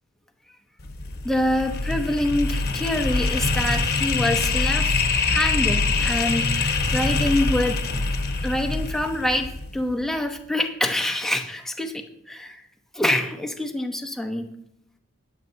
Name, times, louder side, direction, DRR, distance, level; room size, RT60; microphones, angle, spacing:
sound 1, 0.8-9.9, left 3 dB, 45° left, 1.1 m, -24 dB
voice 1, 1.2-7.8 8.4-12.6 12.9-14.5, left 1 dB, ahead, 4 dB, 0.9 m, -26 dB
20.5 x 7.7 x 2.8 m, 0.75 s
head